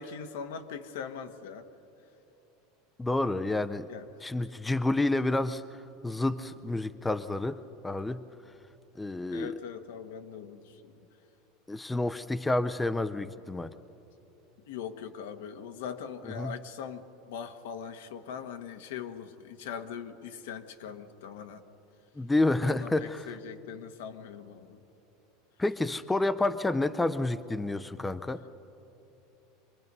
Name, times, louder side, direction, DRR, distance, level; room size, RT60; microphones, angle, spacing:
voice 1, 0.0-1.7 3.9-4.1 9.3-11.0 14.7-21.6 22.6-24.8, left 7 dB, 85° left, 8 dB, 1.2 m, -41 dB
voice 2, 3.0-3.9 4.2-5.6 6.0-7.6 7.8-8.2 9.0-9.5 11.7-13.7 16.2-16.5 22.2-23.3 25.6-28.4, left 2 dB, 5° left, 12 dB, 0.4 m, -29 dB
25.5 x 21.0 x 5.4 m, 3.0 s
supercardioid pair, 155°, 0 cm